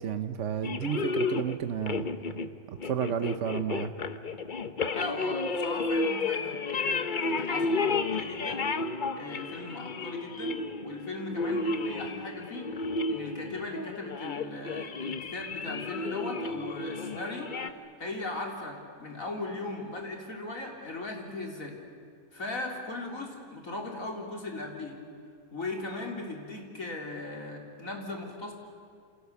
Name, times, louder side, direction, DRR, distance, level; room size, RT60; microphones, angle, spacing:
voice 1, 0.0-2.1 2.7-3.9, right 8 dB, 55° right, 9 dB, 1.1 m, -31 dB
sound 1, 0.6-17.7, left 3 dB, 40° left, 0.9 m, -32 dB
voice 2, 4.9-8.6 9.2-12.7 13.1-17.5 18.0-21.8 22.3-25.0 25.5-28.5, left 2 dB, 60° left, 1 dB, 3.9 m, -38 dB
28.5 x 28.0 x 7.0 m, 2.3 s
omnidirectional pair, 1.6 m